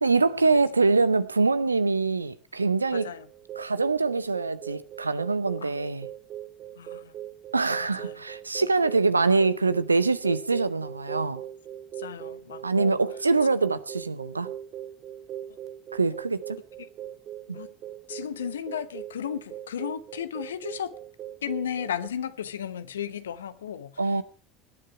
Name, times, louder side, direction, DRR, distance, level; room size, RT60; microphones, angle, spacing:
voice 1, 0.0-3.1 3.6-6.1 7.5-11.4 12.6-14.5 15.9-16.6 17.5-17.6 24.0-24.2, right 3 dB, 85° right, 0.7 m, -24 dB
voice 2, 2.9-3.3 5.6-5.7 6.8-7.1 8.0-8.2 12.0-13.0 17.5-17.7 18.1-20.9 21.4-23.9, left 8 dB, 75° left, 1.0 m, -34 dB
sound 1, 2.9-22.1, right 11 dB, 45° right, 0.8 m, -41 dB
19.5 x 10.5 x 4.7 m
figure-of-eight pair, 65°, 0 cm